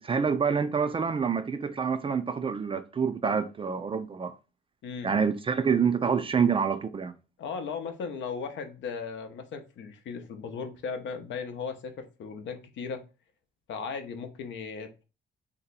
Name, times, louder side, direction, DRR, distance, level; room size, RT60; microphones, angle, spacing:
voice 1, 0.0-4.3 5.0-7.1, right 6 dB, 25° right, 0.4 m, -27 dB
voice 2, 4.8-5.1 7.4-13.1 13.7-15.0, left 5 dB, 70° left, 0.7 m, -37 dB
2.7 x 2.2 x 4.0 m
cardioid pair, 90°, 20 cm